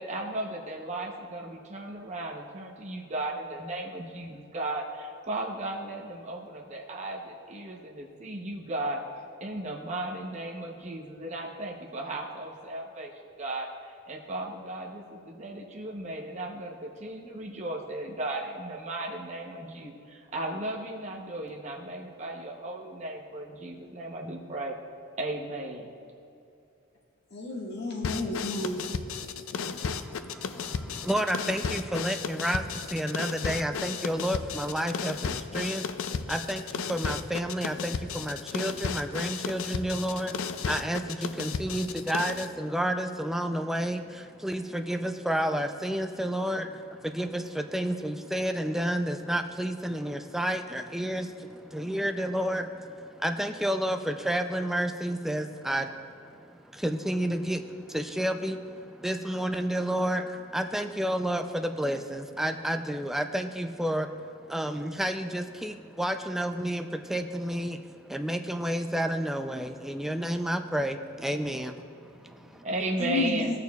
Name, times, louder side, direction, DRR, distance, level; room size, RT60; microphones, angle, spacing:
voice 1, 0.0-9.0 9.4-13.1 13.4-24.8 25.2-25.9 72.6-73.6, right 2 dB, 35° right, 0 dB, 0.8 m, -35 dB
voice 2, 27.3-28.8 73.0-73.6, left 3 dB, 55° left, -2 dB, 1.6 m, -31 dB
sound 1, 28.0-42.5, left 6 dB, 75° left, 0.4 m, -34 dB
voice 3, 29.6-72.4, equal, ahead, 5 dB, 0.3 m, -31 dB
16.0 x 6.7 x 2.3 m, 2.6 s
head